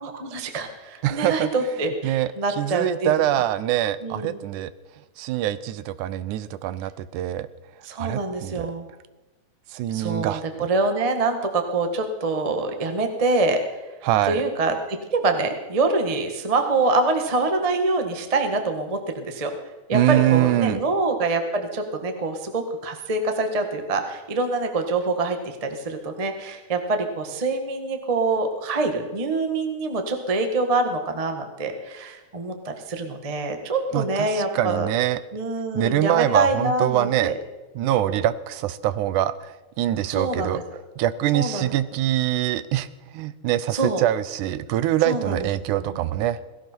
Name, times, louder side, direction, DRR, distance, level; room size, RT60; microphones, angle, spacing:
voice 1, 0.0-3.4 4.0-4.4 7.8-8.9 9.9-13.8 14.3-19.5 19.9-34.9 35.3-37.4 38.1-38.2 40.1-40.6 41.3-41.7 43.7-44.0 45.0-45.4 45.7-45.8, right 3 dB, 25° right, 5 dB, 0.7 m, -25 dB
voice 2, 1.0-1.5 2.0-4.7 5.2-7.5 8.0-8.7 9.7-10.7 14.0-14.4 19.9-20.8 33.9-35.2 35.7-37.3 37.8-40.6 41.0-42.9 43.1-46.4, right 13 dB, 80° right, 15 dB, 2.1 m, -24 dB
17.5 x 16.5 x 4.5 m, 1.1 s
omnidirectional pair, 3.6 m